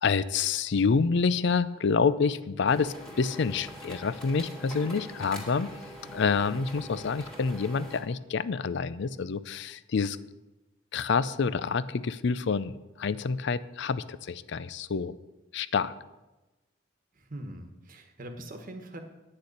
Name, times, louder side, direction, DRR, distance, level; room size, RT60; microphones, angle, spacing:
voice 1, 0.0-5.7 6.1-10.2 10.9-15.1 15.5-15.9, left 5 dB, 65° left, 16 dB, 0.5 m, -27 dB
sound 1, 2.7-8.0, equal, 5° left, 2.1 m, -44 dB
voice 2, 6.5-7.1 17.2-19.0, right 1 dB, 45° right, 5 dB, 1.2 m, -43 dB
9.6 x 6.6 x 8.5 m, 1.1 s
head